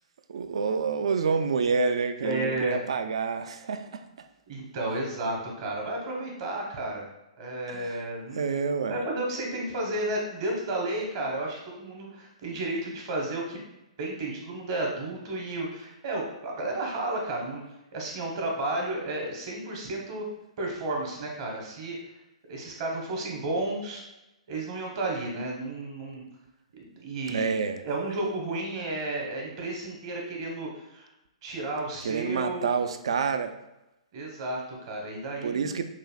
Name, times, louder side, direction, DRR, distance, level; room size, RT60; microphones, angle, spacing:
voice 1, 0.3-4.3 7.7-8.0 8.3-9.0 27.3-27.8 32.0-33.6 35.4-35.8, right 5 dB, 55° right, 9 dB, 0.3 m, -28 dB
voice 2, 2.2-2.8 4.5-7.0 7.4-8.5 8.9-13.6 14.0-17.6 17.9-20.2 20.6-22.0 22.5-24.0 24.5-26.2 26.7-27.5 27.8-31.1 31.4-32.6 34.1-35.8, right 2 dB, 40° right, 0 dB, 1.1 m, -32 dB
5.8 x 2.7 x 2.3 m, 0.94 s
figure-of-eight pair, 115°, 3 cm